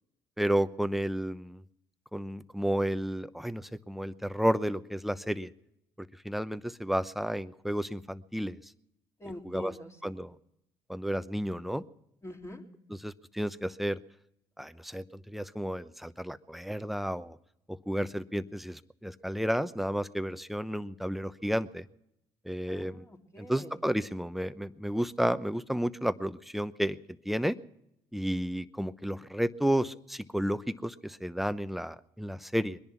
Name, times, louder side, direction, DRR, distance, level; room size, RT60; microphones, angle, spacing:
voice 1, 0.4-1.6 2.1-5.5 6.2-8.6 9.4-9.7 10.0-10.3 10.9-11.8 13.0-14.0 14.6-17.4 17.7-21.8 22.4-23.0 23.4-27.0 27.3-27.6 28.1-32.8, equal, ahead, 13 dB, 0.8 m, -32 dB
voice 2, 9.2-10.2 12.2-12.6 22.7-23.7, left 1 dB, 25° left, 1 dB, 3.7 m, -45 dB
22.0 x 10.5 x 6.0 m, 0.79 s
hypercardioid pair, 60°, 13 cm